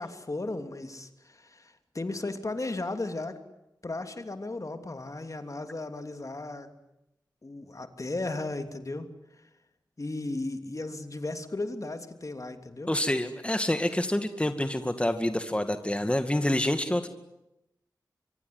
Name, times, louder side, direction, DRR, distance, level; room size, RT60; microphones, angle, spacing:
voice 1, 0.0-3.4 3.8-6.7 7.4-9.1 10.0-12.9, left 2 dB, 45° left, 8 dB, 3.0 m, -35 dB
voice 2, 12.9-17.1, left 1 dB, 15° left, 8 dB, 2.1 m, -27 dB
25.0 x 23.5 x 9.7 m, 0.88 s
cardioid pair, 45°, 8 cm